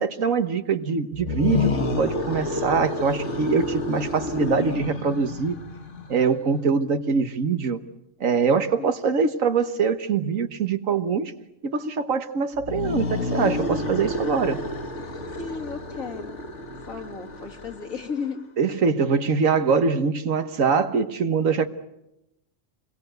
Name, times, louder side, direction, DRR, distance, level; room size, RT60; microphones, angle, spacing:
voice 1, 0.0-1.7 2.0-5.6 6.1-7.8 8.2-11.3 11.6-14.6 18.6-21.7, right 5 dB, 80° right, 9 dB, 1.7 m, -23 dB
sound 1, 1.1-6.3 12.6-18.2, left 3 dB, 60° left, 1.8 m, -29 dB
voice 2, 8.8-9.1 15.4-16.4 16.9-18.5, left 5 dB, 85° left, 3 dB, 2.8 m, -34 dB
27.5 x 22.0 x 8.0 m, 0.90 s
omnidirectional pair, 1.4 m